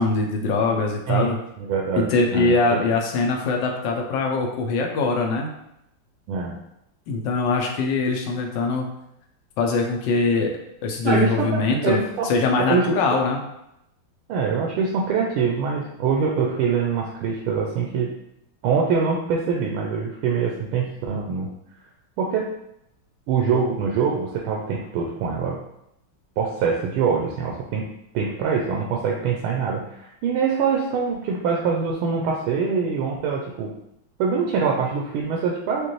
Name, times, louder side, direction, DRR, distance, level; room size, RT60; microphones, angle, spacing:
voice 1, 0.0-1.4 2.0-5.5 7.1-8.9 9.6-10.5 10.8-12.0 12.2-13.4, left 3 dB, 70° left, 1 dB, 1.2 m, -22 dB
voice 2, 1.6-2.8 6.3-6.6 11.0-12.3 12.6-12.9 13.1-13.2 14.3-18.1 18.6-21.5 22.2-22.5 23.3-25.6 26.4-27.8 28.1-33.7 34.2-35.9, right 5 dB, 90° right, -1 dB, 1.5 m, -24 dB
5.0 x 2.5 x 3.1 m, 0.81 s
omnidirectional pair, 2.3 m